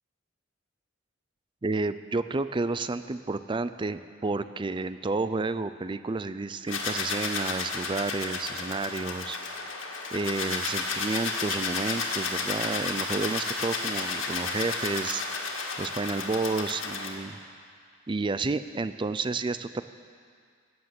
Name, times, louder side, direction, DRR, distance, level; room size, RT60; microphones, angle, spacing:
voice 1, 1.6-9.4 10.1-15.2 15.8-17.4 18.1-19.8, right 3 dB, 25° right, 12 dB, 0.4 m, -30 dB
sound 1, 6.7-17.1, left 4 dB, 85° left, 1.9 m, -32 dB
16.0 x 9.6 x 7.7 m, 2.1 s
head